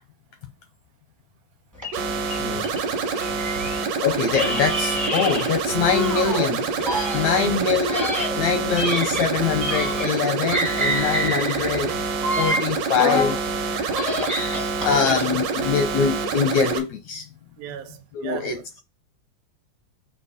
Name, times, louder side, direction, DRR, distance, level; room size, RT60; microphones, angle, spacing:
sound 1, 1.8-3.9 4.3-6.5 6.8-10.2 10.5-13.4 13.8-15.5, equal, 20° right, 0.5 m, -28 dB
sound 2, 1.9-16.8, right 4 dB, 65° right, 1.7 m, -27 dB
voice 1, 4.0-11.9 12.4-13.9 14.8-17.3 18.1-18.6, left 6 dB, 80° left, 1.6 m, -24 dB
voice 2, 7.3-8.1 14.9-15.3 17.6-18.5, right 11 dB, 85° right, 2.3 m, -36 dB
7.2 x 2.9 x 4.9 m
omnidirectional pair, 4.1 m